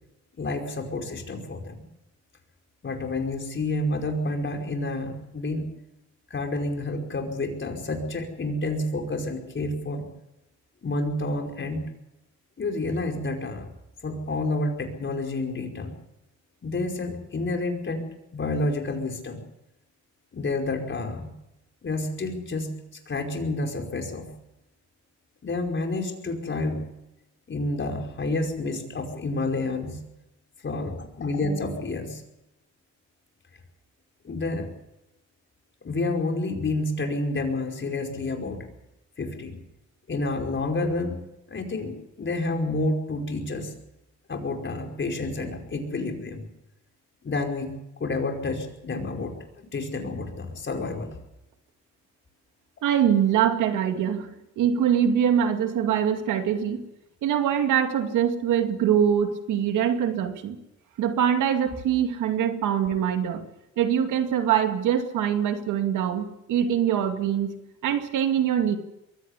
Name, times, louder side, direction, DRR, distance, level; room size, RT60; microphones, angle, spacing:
voice 1, 0.4-1.8 2.8-5.6 6.3-10.1 10.8-11.8 12.6-13.6 14.0-16.0 16.6-18.0 18.3-19.4 20.3-21.3 21.8-22.8 23.1-24.3 25.4-26.8 27.5-30.0 30.6-32.2 34.2-34.7 35.8-38.7 39.2-39.6 40.1-41.2 41.5-43.7 44.3-46.5 47.2-51.2, left 2 dB, 40° left, 3 dB, 5.1 m, -29 dB
voice 2, 52.8-54.3 54.6-56.8 57.2-60.6 61.0-63.4 63.8-67.5 67.8-68.8, right 9 dB, 85° right, 6 dB, 2.4 m, -23 dB
22.5 x 16.0 x 8.3 m, 0.91 s
cardioid pair, 90°, 30 cm